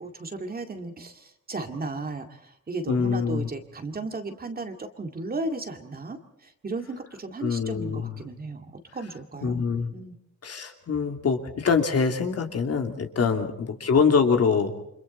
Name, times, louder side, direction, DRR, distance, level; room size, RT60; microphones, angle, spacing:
voice 1, 0.0-9.7 9.9-10.1 13.2-13.3, right 2 dB, 30° right, 5 dB, 2.2 m, -35 dB
voice 2, 2.9-3.5 7.4-8.2 9.4-9.9 10.4-14.7, left 5 dB, 50° left, 4 dB, 2.8 m, -24 dB
29.5 x 26.5 x 4.2 m, 0.75 s
wide cardioid pair, 140°, 30 cm